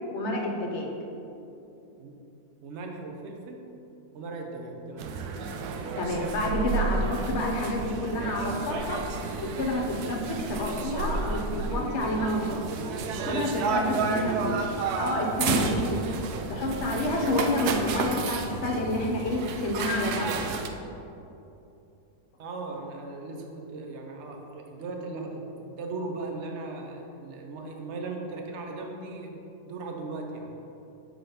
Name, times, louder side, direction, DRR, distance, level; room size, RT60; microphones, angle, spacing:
voice 1, 0.1-0.9 6.0-9.0 9.4-12.5 13.0-14.6 15.0-16.0 16.5-20.4, left 1 dB, 55° left, 0 dB, 1.0 m, -29 dB
voice 2, 2.6-3.6 4.1-5.1 18.8-18.9 22.4-30.6, right 3 dB, 55° right, 2 dB, 0.9 m, -38 dB
sound 1, 5.0-20.7, right 4 dB, 75° right, 1.1 m, -31 dB
6.8 x 3.8 x 5.1 m, 2.8 s
omnidirectional pair, 1.7 m